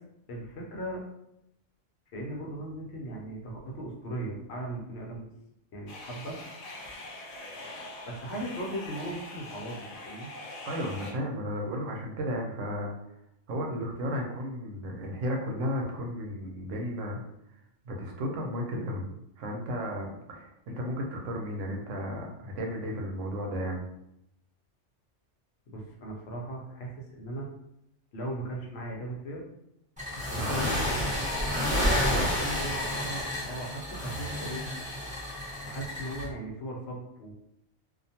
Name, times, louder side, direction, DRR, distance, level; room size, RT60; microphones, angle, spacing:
voice 1, 0.3-1.0 2.1-5.3 5.7-6.4 8.1-10.3 25.7-27.5 28.1-29.4 30.3-31.4 31.9-34.6 35.6-37.3, right 1 dB, 65° left, -1 dB, 0.8 m, -38 dB
sound 1, 5.9-11.1, left 2 dB, 90° left, 0.3 m, -43 dB
voice 2, 10.6-12.9 13.5-17.2 17.8-19.1 19.4-23.8 30.4-30.7 32.1-32.3, equal, 85° right, 1 dB, 0.9 m, -33 dB
sound 2, 30.0-36.2, left 1 dB, 5° right, 0.9 m, -30 dB
2.4 x 2.2 x 2.7 m, 0.80 s
omnidirectional pair, 1.3 m